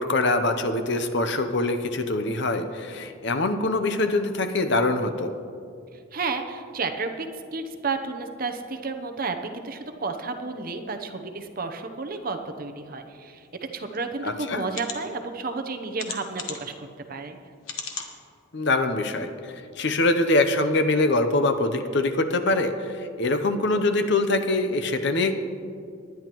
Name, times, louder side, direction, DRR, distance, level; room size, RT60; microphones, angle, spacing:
voice 1, 0.0-5.3 14.2-14.6 18.5-19.3 19.8-25.3, left 2 dB, 55° left, 8 dB, 0.7 m, -24 dB
voice 2, 6.1-13.5 13.7-17.4, right 4 dB, 40° right, 6 dB, 0.7 m, -32 dB
sound 1, 13.9-14.0 14.7-15.0 16.0-16.7 17.6-18.1 18.7-18.8 19.1-19.2, left 6 dB, 80° left, 1.2 m, -35 dB
19.5 x 10.5 x 3.0 m, 2.4 s
head